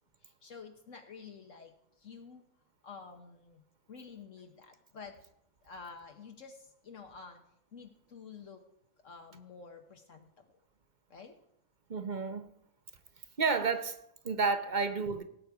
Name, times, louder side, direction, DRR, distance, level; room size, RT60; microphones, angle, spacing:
voice 1, 0.2-2.4 2.8-3.6 3.9-5.2 5.6-7.4 7.7-8.6 9.0-10.5 11.1-11.4, left 5 dB, 65° left, 4 dB, 1.4 m, -50 dB
voice 2, 11.9-12.5 13.4-15.2, right 4 dB, 40° right, 9 dB, 0.8 m, -31 dB
17.5 x 8.3 x 4.8 m, 0.75 s
omnidirectional pair, 1.4 m